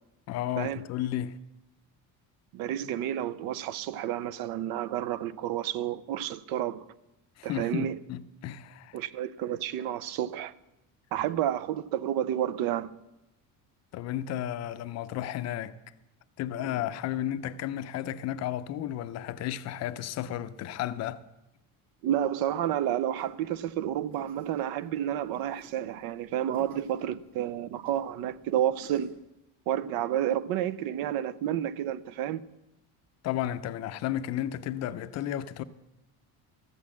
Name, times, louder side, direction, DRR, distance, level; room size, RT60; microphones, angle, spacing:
voice 1, 0.3-1.4 7.4-9.0 13.9-15.8 16.4-21.2 33.2-35.6, left 12 dB, 45° left, 0.5 m, -33 dB
voice 2, 2.5-6.8 7.4-8.0 8.9-10.5 11.1-12.9 16.6-16.7 22.0-29.2 29.7-32.4, right 11 dB, 70° right, 0.6 m, -30 dB
sound 1, 23.2-29.1, right 2 dB, 45° right, 3.1 m, -55 dB
13.5 x 8.4 x 7.3 m
cardioid pair, 180°, 38 cm